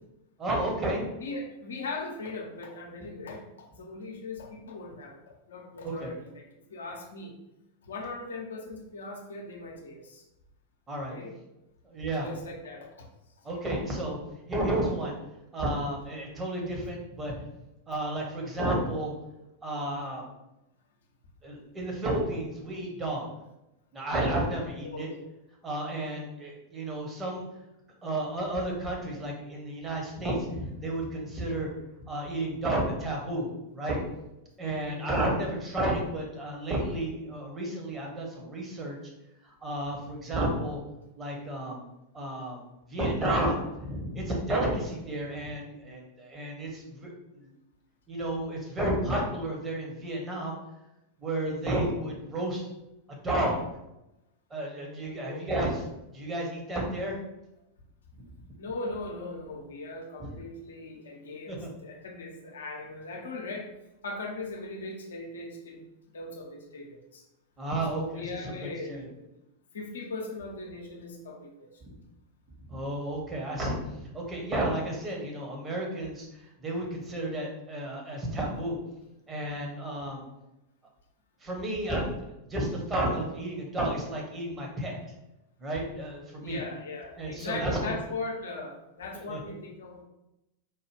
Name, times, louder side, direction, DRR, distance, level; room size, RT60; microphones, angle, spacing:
voice 1, 0.4-1.0 5.8-6.1 10.9-11.1 11.8-12.3 13.4-14.2 14.5-15.2 15.5-17.4 17.9-19.1 19.6-20.2 21.4-23.3 23.9-25.1 25.6-27.4 28.0-31.7 32.0-33.5 33.7-34.0 34.6-39.0 39.4-40.8 41.2-41.8 42.1-42.6 42.9-47.5 48.1-50.5 51.2-52.7 53.1-53.6 54.5-55.8 56.1-57.2 60.2-60.3 61.5-61.7 67.6-69.0 72.7-73.8 74.1-76.3 76.6-78.8 79.3-80.2 81.4-82.0 82.5-85.0 85.6-86.6 87.2-88.0 89.1-89.4, right 1 dB, 20° right, -1 dB, 1.1 m, -32 dB
voice 2, 1.0-6.4 6.7-7.4 7.8-10.2 11.1-11.3 12.2-13.1 13.4-13.7 24.8-25.2 34.6-35.1 55.2-55.4 58.6-63.7 64.0-65.9 66.1-67.2 67.9-69.3 69.7-71.7 86.4-90.0, left 2 dB, 65° left, 1 dB, 0.8 m, -39 dB
4.6 x 2.3 x 3.3 m, 0.91 s
figure-of-eight pair, 90°, 0 cm